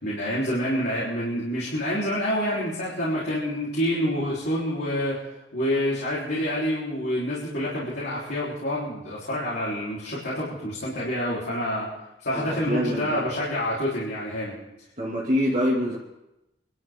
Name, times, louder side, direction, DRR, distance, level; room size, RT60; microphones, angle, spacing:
voice 1, 0.0-5.2 5.5-11.9 12.2-14.6, equal, 65° left, -8 dB, 3.9 m, -27 dB
voice 2, 12.3-13.2 15.0-16.0, equal, 40° right, -6 dB, 2.5 m, -25 dB
25.5 x 12.5 x 3.7 m, 0.92 s
head